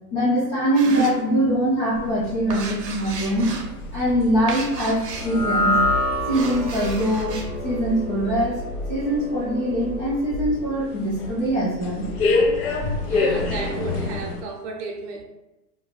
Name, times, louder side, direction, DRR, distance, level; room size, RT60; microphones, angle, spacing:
voice 1, 0.1-3.5 3.9-5.8 6.3-8.6 8.9-12.1, equal, 20° left, -9 dB, 0.3 m, -23 dB
sound 1, 0.7-1.7 2.0-5.6 6.1-7.5, right 5 dB, 80° right, 0.7 m, -33 dB
sound 2, 1.9-14.4, left 3 dB, 65° left, 0.7 m, -29 dB
sound 3, 5.1-11.5, left 1 dB, 5° left, 0.7 m, -28 dB
voice 2, 13.0-15.2, right 4 dB, 45° right, 1 dB, 0.7 m, -33 dB
2.5 x 2.1 x 3.3 m, 1.0 s
hypercardioid pair, 110°, 48 cm